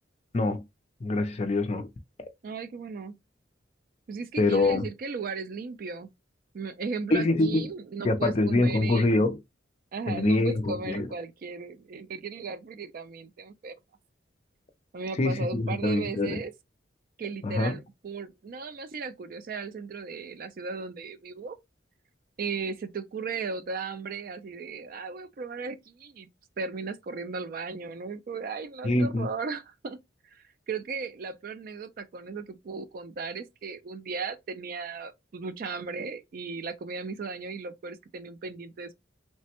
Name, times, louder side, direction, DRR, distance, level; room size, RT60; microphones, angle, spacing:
voice 1, 1.0-1.9 4.4-4.9 7.1-7.7 8.0-9.4 10.1-11.1 15.2-16.4 17.4-17.8 28.8-29.3, left 2 dB, 35° left, 0.4 m, -25 dB
voice 2, 2.4-3.2 4.1-6.1 6.5-9.3 9.9-13.7 14.9-16.5 17.2-21.6 22.4-26.3 26.6-30.0 30.3-38.9, right 4 dB, 50° right, 0.3 m, -36 dB
3.2 x 2.1 x 2.8 m
head